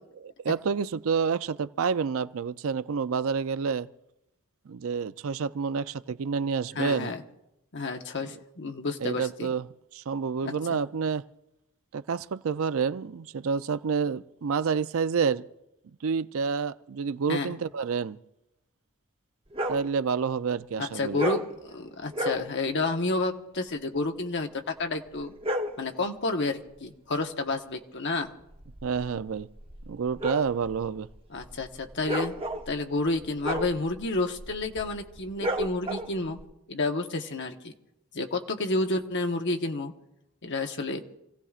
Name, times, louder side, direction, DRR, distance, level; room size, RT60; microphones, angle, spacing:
voice 1, 0.2-3.9 4.7-7.1 9.0-9.7 9.9-11.2 11.9-15.4 16.0-18.2 19.7-21.2 28.8-29.5 29.9-31.1, right 5 dB, 65° right, 0.4 m, -28 dB
voice 2, 6.8-7.2 7.7-9.5 10.4-10.6 17.3-17.5 20.8-25.3 25.8-28.3 31.3-32.4 32.7-36.4 36.7-37.7 38.1-39.9 40.4-41.0, left 2 dB, 55° left, 1.1 m, -30 dB
sound 1, 19.5-19.9 21.1-21.5 22.1-22.5 25.2-25.9 28.4-36.4, equal, 25° right, 0.8 m, -33 dB
28.0 x 16.5 x 2.5 m
head